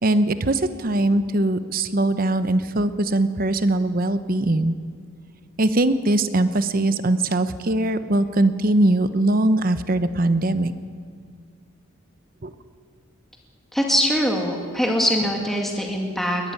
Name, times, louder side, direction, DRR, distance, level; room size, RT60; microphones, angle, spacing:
voice 1, 0.0-4.8 5.6-10.7 12.4-12.5, right 1 dB, 45° right, 12 dB, 0.8 m, -21 dB
voice 2, 13.7-16.5, equal, ahead, 0 dB, 2.0 m, -22 dB
20.5 x 13.0 x 9.9 m, 2.1 s
head